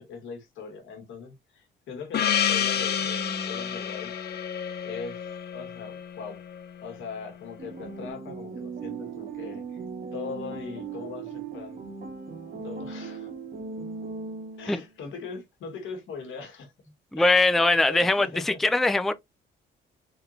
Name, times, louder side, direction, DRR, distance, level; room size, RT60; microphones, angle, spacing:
voice 1, 0.0-4.1 4.8-6.4 6.8-9.8 10.1-11.9 12.5-13.3 14.6-16.7 17.1-18.6, left 5 dB, 75° left, 1.8 m, -40 dB
Gong, 2.1-6.9, left 8 dB, 55° left, 0.7 m, -29 dB
sound 1, 7.6-14.9, right 5 dB, 45° right, 1.6 m, -38 dB
voice 2, 17.1-19.1, left 2 dB, ahead, 0.4 m, -21 dB
3.9 x 3.6 x 2.7 m
cardioid pair, 90°, 20 cm